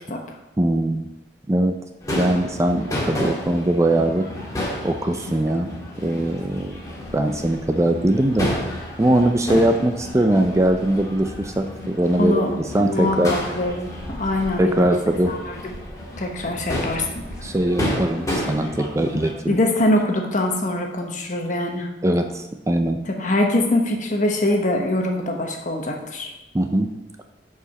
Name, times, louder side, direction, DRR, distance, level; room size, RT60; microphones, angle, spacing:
voice 1, 0.6-1.1 1.5-1.8 2.1-4.3 4.8-5.7 6.0-6.8 7.1-8.5 9.0-13.4 14.6-15.3 17.4-19.6 22.0-23.0 26.5-26.9, right 1 dB, 15° right, 6 dB, 0.4 m, -21 dB
Crowd / Fireworks, 2.0-19.3, left 1 dB, 20° left, 2.0 m, -31 dB
voice 2, 12.2-12.5 12.8-14.9 15.3-15.7 16.2-17.2 19.5-21.9 23.1-26.3, left 1 dB, 45° left, 2 dB, 1.1 m, -23 dB
6.8 x 4.9 x 5.8 m, 0.97 s
head